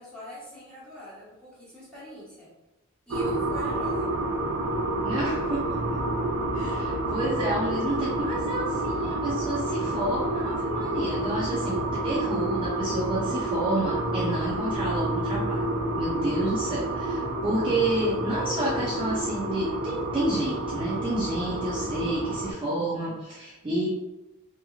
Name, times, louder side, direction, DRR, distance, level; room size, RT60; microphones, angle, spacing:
voice 1, 0.0-2.5 3.1-4.1, left 1 dB, 5° left, -10 dB, 1.2 m, -42 dB
sound 1, 3.1-22.5, right 2 dB, 75° right, 0.4 m, -29 dB
voice 2, 5.0-6.0 6.5-15.6 16.0-23.9, right 1 dB, 25° right, -7 dB, 0.5 m, -30 dB
2.9 x 2.5 x 2.3 m, 0.98 s
head